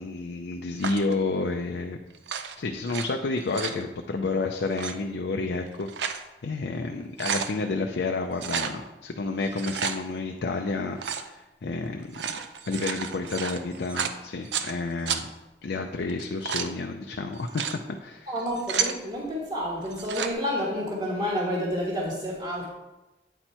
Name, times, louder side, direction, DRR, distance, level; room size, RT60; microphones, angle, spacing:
voice 1, 0.0-2.0 2.6-12.4 12.7-15.3 15.6-17.6 18.0-18.3, left 3 dB, 70° left, 3 dB, 0.5 m, -30 dB
sound 1, 0.8-1.1 2.1-3.0 3.4-3.8 4.6-4.9 5.6-6.2 6.7-6.8 7.0-7.5 8.4-8.7 9.4-10.0 11.0-11.3 12.0-14.7 15.1-15.2 16.1-16.7 17.3-17.8 18.4-19.0 19.9-20.3, right 7 dB, 80° right, 0.5 m, -31 dB
voice 2, 18.3-22.7, equal, 30° right, -6 dB, 1.3 m, -29 dB
9.1 x 4.4 x 4.4 m, 1.0 s
head